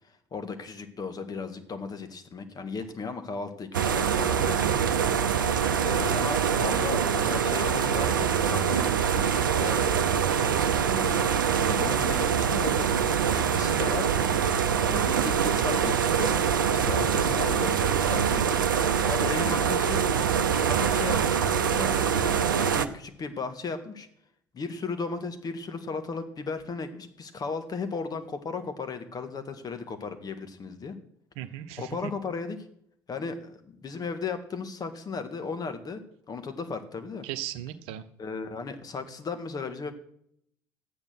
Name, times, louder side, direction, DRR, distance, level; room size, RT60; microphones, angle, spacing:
voice 1, 0.0-4.8 5.8-9.9 10.8-11.3 11.7-12.9 13.3-14.1 14.9-16.4 16.7-18.4 18.7-20.0 20.6-24.1 24.5-31.0 31.8-32.6 33.1-36.0 36.3-37.3 38.2-39.9, left 4 dB, 40° left, 8 dB, 1.9 m, -36 dB
sound 1, 3.7-22.9, right 7 dB, 85° right, 0.7 m, -24 dB
voice 2, 16.8-17.1 31.4-32.1 37.2-38.0, right 11 dB, 65° right, 12 dB, 1.0 m, -37 dB
12.5 x 8.9 x 6.1 m, 0.70 s
hypercardioid pair, 60°, 11 cm